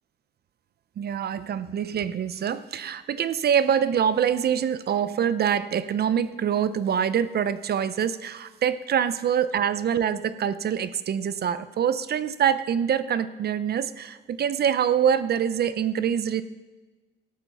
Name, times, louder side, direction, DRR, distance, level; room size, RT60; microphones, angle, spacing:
voice 1, 1.0-16.4, right 8 dB, 55° right, 14 dB, 0.6 m, -25 dB
13.5 x 11.5 x 5.5 m, 1.2 s
cardioid pair, 90°, 20 cm